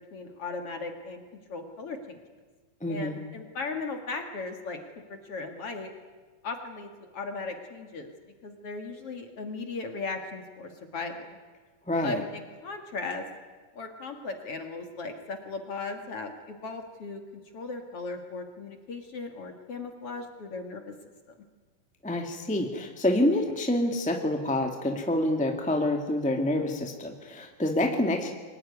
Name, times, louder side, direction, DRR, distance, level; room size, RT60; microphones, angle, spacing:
voice 1, 0.1-1.2 1.5-2.2 2.9-5.9 6.4-8.1 8.4-11.3 12.0-13.2 13.7-20.9 28.0-28.2, left 3 dB, 45° left, 5 dB, 2.5 m, -37 dB
voice 2, 2.8-3.2 11.9-12.2 22.0-28.3, left 1 dB, 5° left, 3 dB, 0.9 m, -27 dB
24.0 x 19.5 x 9.8 m, 1.4 s
omnidirectional pair, 4.1 m